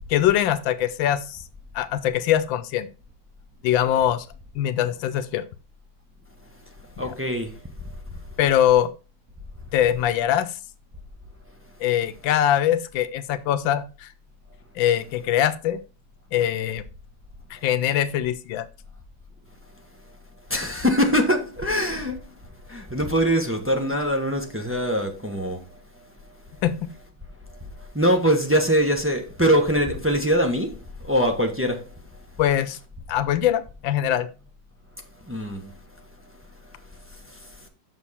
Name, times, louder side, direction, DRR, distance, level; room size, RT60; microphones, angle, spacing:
voice 1, 0.1-1.4 1.7-2.9 3.6-4.3 4.5-5.4 7.0-7.1 8.4-8.9 9.7-10.5 11.8-14.1 14.8-15.8 16.3-16.8 17.5-18.7 26.6-26.9 32.4-32.8 33.1-34.3, left 11 dB, 85° left, 1.4 m, -22 dB
voice 2, 7.0-7.5 20.5-22.2 22.7-25.6 27.9-31.9 35.3-35.7, equal, 10° right, 0.8 m, -22 dB
7.2 x 6.1 x 4.2 m
omnidirectional pair, 2.0 m